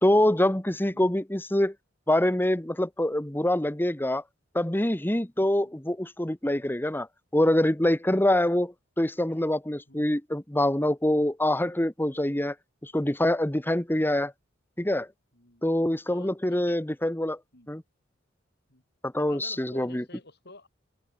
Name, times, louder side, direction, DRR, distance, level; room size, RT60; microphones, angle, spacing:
voice 1, 0.0-1.7 2.1-4.2 4.5-7.1 7.3-12.5 12.8-14.3 14.8-15.1 15.6-17.4 17.7-17.8 19.0-20.0, left 1 dB, 10° left, 1.3 m, -25 dB
voice 2, 15.3-15.7 16.1-16.8 17.5-17.7 18.7-18.8 19.2-20.7, left 2 dB, 60° left, 7.1 m, -50 dB
head